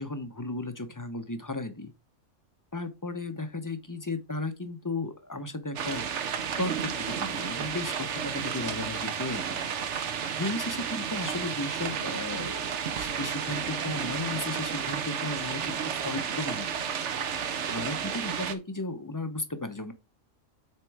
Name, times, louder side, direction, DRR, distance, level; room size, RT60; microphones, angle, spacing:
voice 1, 0.0-1.9 2.7-6.1 6.6-9.6 10.4-15.8 16.0-16.9 17.7-19.9, left 2 dB, 20° left, 0.6 m, -35 dB
sound 1, 5.8-18.5, right 7 dB, 70° right, 1.1 m, -32 dB
7.4 x 4.4 x 4.7 m
omnidirectional pair, 1.3 m